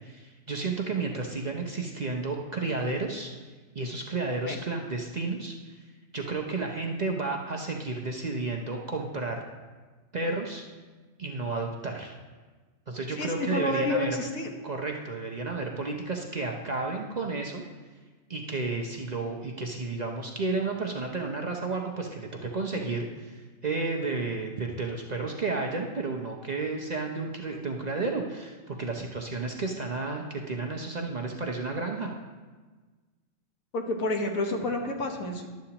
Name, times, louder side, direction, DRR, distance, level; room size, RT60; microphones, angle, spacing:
voice 1, 0.0-3.3 3.7-5.9 6.1-9.4 10.1-10.6 11.2-12.1 12.9-14.1 14.6-17.6 18.3-32.1, right 3 dB, 45° right, 1 dB, 0.6 m, -32 dB
voice 2, 13.2-14.5 33.7-35.5, left 2 dB, 85° left, 2 dB, 1.6 m, -29 dB
11.5 x 8.2 x 2.9 m, 1.3 s
omnidirectional pair, 1.4 m